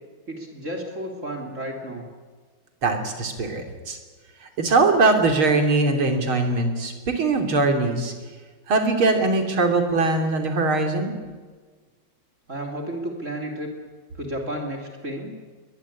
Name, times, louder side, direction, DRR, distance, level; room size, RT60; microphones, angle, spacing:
voice 1, 0.3-2.0 12.5-13.7 14.1-15.4, right 1 dB, 35° right, 2 dB, 3.5 m, -32 dB
voice 2, 2.8-4.0 4.4-8.1 8.7-11.1, right 3 dB, 85° right, 4 dB, 3.9 m, -21 dB
22.0 x 21.0 x 8.7 m, 1.4 s
omnidirectional pair, 2.2 m